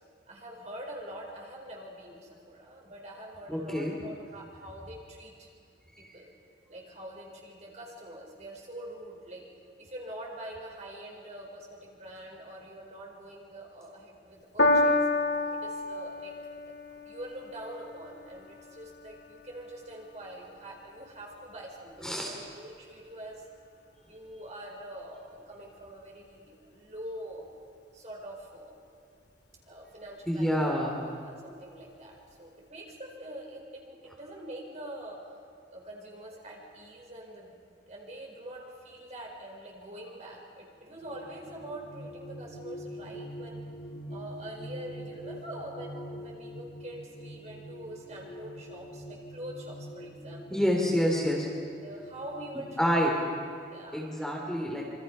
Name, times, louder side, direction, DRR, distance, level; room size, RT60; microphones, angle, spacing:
voice 1, 0.3-5.5 6.0-6.3 6.7-9.5 9.8-15.0 15.5-16.3 17.0-23.4 24.1-27.4 27.9-28.8 29.7-30.8 31.2-35.2 35.7-37.5 37.9-43.7 44.1-50.6 51.8-53.2 53.7-54.1, right 1 dB, 40° right, -1 dB, 4.8 m, -44 dB
voice 2, 3.5-3.9 22.0-22.3 30.3-31.0 50.5-51.5 52.8-53.2 53.9-54.8, equal, 5° left, -2 dB, 2.8 m, -27 dB
Piano, 14.6-21.2 22.0-22.1, left 2 dB, 70° left, 2.2 m, -31 dB
sound 1, 40.7-53.5, equal, 50° left, 6.2 m, -44 dB
27.0 x 24.5 x 5.5 m, 2.3 s
head